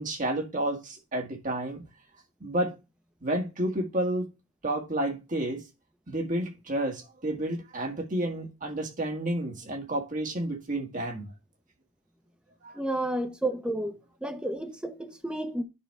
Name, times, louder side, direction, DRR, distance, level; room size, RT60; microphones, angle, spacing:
voice 1, 0.0-1.8 2.4-2.8 3.2-4.3 4.6-5.6 6.1-11.3 12.6-12.8, right 1 dB, 40° right, 1.6 m, -30 dB
voice 2, 12.8-13.9 14.2-15.6, right 1 dB, 5° right, 0.9 m, -31 dB
10.0 x 3.9 x 4.7 m
head